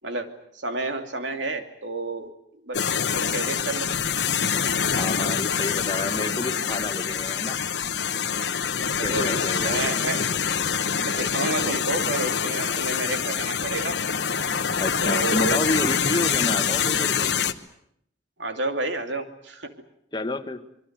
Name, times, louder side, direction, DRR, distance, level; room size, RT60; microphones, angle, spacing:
voice 1, 0.5-2.3 2.6-2.8 3.1-3.9 8.8-10.2 11.0-14.0 15.0-15.6 18.4-19.7, right 2 dB, 75° right, 6 dB, 2.7 m, -30 dB
sound 1, 2.7-17.5, left 7 dB, 65° left, 1.1 m, -25 dB
voice 2, 5.0-7.6 9.0-10.1 14.8-17.4 20.1-20.6, left 2 dB, 25° left, 7 dB, 1.5 m, -29 dB
25.5 x 22.5 x 8.1 m, 0.73 s
head